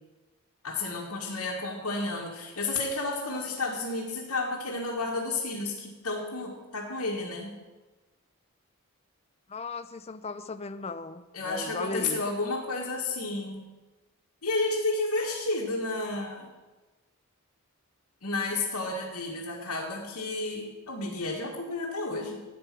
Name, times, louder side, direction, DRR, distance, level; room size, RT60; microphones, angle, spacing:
voice 1, 0.6-7.5 11.3-13.6 14.4-16.5 18.2-22.4, left 3 dB, 80° left, -4 dB, 1.8 m, -31 dB
voice 2, 9.5-12.2, left 3 dB, 30° left, 12 dB, 0.5 m, -37 dB
12.5 x 8.9 x 6.1 m, 1.2 s
head